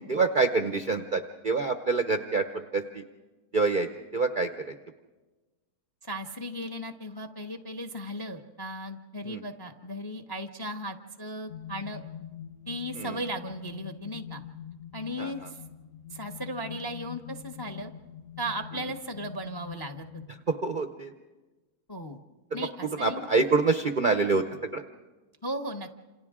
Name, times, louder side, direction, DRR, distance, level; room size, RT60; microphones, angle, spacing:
voice 1, 0.1-3.0 3.5-4.7 9.2-9.4 13.0-13.2 15.2-15.5 20.5-21.1 22.6-24.4 24.7-24.8, right 4 dB, 50° right, 7 dB, 0.6 m, -27 dB
voice 2, 6.0-12.0 12.7-14.4 14.9-15.6 16.1-17.9 18.4-20.2 21.9-22.2 22.5-23.3 25.4-25.9, equal, 25° left, 6 dB, 0.5 m, -36 dB
sound 1, 11.5-20.3, left 9 dB, 55° left, 1.1 m, -44 dB
28.0 x 27.5 x 3.6 m, 1.2 s
omnidirectional pair, 1.8 m